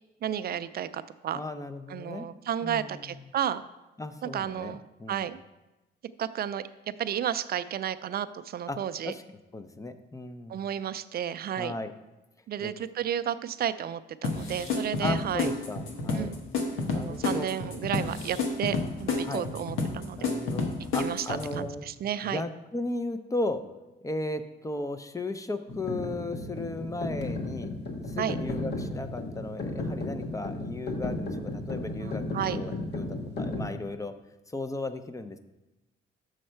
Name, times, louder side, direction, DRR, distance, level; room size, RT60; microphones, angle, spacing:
voice 1, 0.2-1.4 1.9-3.6 4.2-4.8 5.1-5.4 6.2-6.6 7.0-9.1 10.5-11.7 12.5-15.5 16.1-16.4 16.9-18.8 19.0-20.3 21.0-22.4 28.2-28.4 32.0-32.6, right 10 dB, 50° right, 14 dB, 0.4 m, -32 dB
voice 2, 1.3-2.3 2.6-3.1 4.0-5.3 8.7-8.8 9.0-9.2 9.5-10.6 11.6-11.9 12.6-12.7 15.0-16.3 16.9-17.5 19.2-19.4 20.2-21.8 22.2-23.6 24.0-27.7 28.1-33.1 33.4-34.1 34.5-35.4, left 2 dB, 15° left, 10 dB, 0.6 m, -35 dB
sound 1, 14.2-21.6, left 3 dB, 85° left, 1.2 m, -30 dB
sound 2, 25.7-33.7, left 2 dB, 55° left, 1.3 m, -34 dB
6.4 x 6.3 x 4.5 m, 1.0 s
cardioid pair, 90°, 20 cm